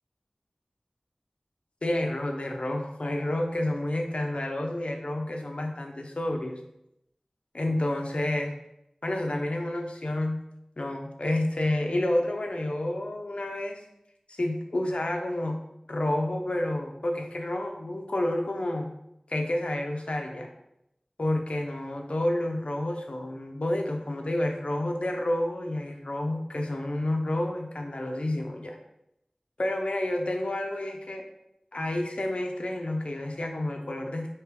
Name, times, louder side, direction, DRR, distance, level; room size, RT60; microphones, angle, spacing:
voice 1, 1.8-6.6 7.5-8.5 9.0-10.4 10.8-13.8 14.3-15.6 15.9-18.9 19.3-20.5 21.2-28.8 29.6-31.2 31.7-34.3, left 1 dB, 70° left, 2 dB, 0.5 m, -29 dB
3.3 x 3.0 x 4.6 m, 0.82 s
wide cardioid pair, 50°, 2 cm